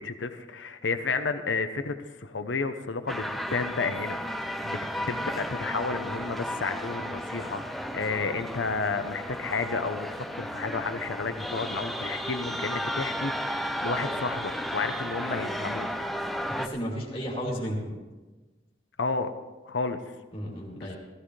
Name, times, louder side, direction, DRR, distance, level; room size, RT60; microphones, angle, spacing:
voice 1, 0.0-4.8 5.1-15.9 19.0-19.3 19.6-20.0 20.7-21.0, left 4 dB, 80° left, 9 dB, 0.8 m, -32 dB
sound 1, 3.1-16.7, equal, ahead, 0.5 m, -34 dB
voice 2, 16.6-18.0 20.3-21.0, equal, 30° left, -4 dB, 2.8 m, -33 dB
17.5 x 14.5 x 3.3 m, 1.2 s
head